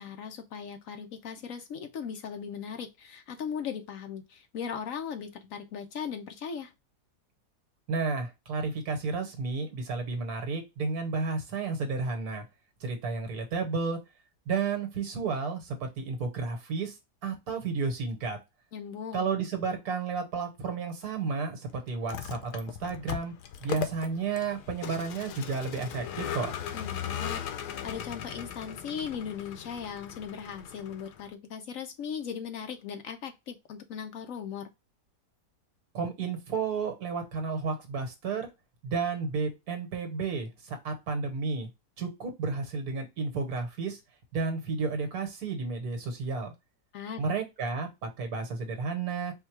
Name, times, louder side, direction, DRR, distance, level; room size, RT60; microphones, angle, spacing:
voice 1, 0.0-6.7 18.7-19.3 26.7-27.4 27.8-34.7 46.9-47.2, left 7 dB, 65° left, 0.9 m, -38 dB
voice 2, 7.9-12.4 12.8-14.0 14.5-16.9 17.2-18.4 19.1-23.3 23.6-26.5 35.9-38.5 38.8-41.7 42.0-44.0 44.3-46.5 47.2-49.3, right 4 dB, 70° right, 1.6 m, -32 dB
Vehicle, 21.9-31.3, left 9 dB, 85° left, 1.2 m, -38 dB
4.5 x 2.2 x 4.5 m
omnidirectional pair, 1.7 m